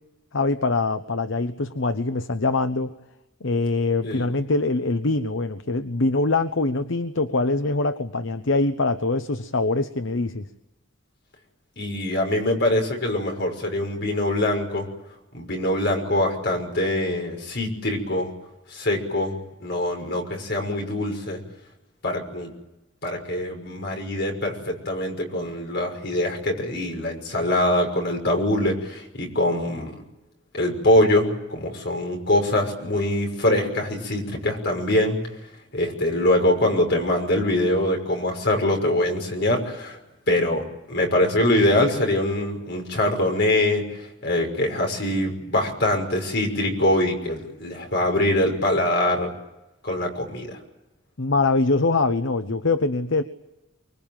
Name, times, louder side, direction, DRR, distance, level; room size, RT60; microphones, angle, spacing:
voice 1, 0.3-2.9 3.4-10.5 51.2-53.2, left 3 dB, 75° left, 10 dB, 1.0 m, -23 dB
voice 2, 11.8-14.9 15.3-18.3 18.7-19.4 19.6-21.4 22.0-22.5 23.0-29.9 30.5-35.2 35.7-40.0 40.3-43.8 44.2-49.3 49.8-50.6, left 1 dB, 60° left, 2 dB, 6.0 m, -23 dB
25.0 x 22.0 x 9.1 m, 0.97 s
head